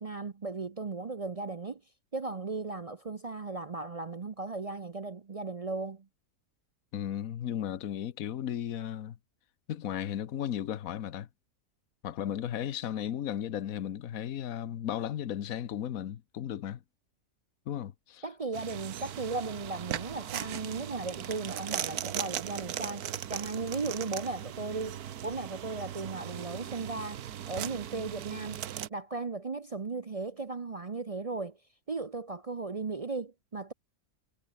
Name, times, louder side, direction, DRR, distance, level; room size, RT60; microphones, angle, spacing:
voice 1, 0.0-1.8 2.1-6.1 18.2-28.6 28.9-31.6 31.9-33.7, right 3 dB, 40° right, 0.5 m, -36 dB
voice 2, 6.9-9.2 9.7-11.3 12.0-16.8 17.7-18.2, left 10 dB, 70° left, 1.4 m, -35 dB
sound 1, 18.5-28.9, right 10 dB, 90° right, 1.4 m, -38 dB
omnidirectional pair, 1.6 m